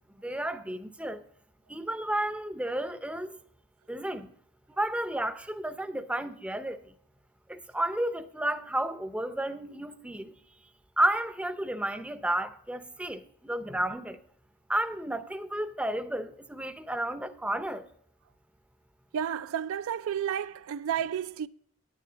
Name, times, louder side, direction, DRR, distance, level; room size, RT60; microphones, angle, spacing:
voice 1, 0.2-1.2 1.7-3.4 3.9-4.3 4.8-6.9 7.5-10.3 11.0-14.2 14.7-17.8, right 1 dB, 5° right, 0.5 m, -32 dB
voice 2, 19.1-21.5, right 9 dB, 65° right, 0.3 m, -31 dB
10.0 x 9.4 x 3.9 m
head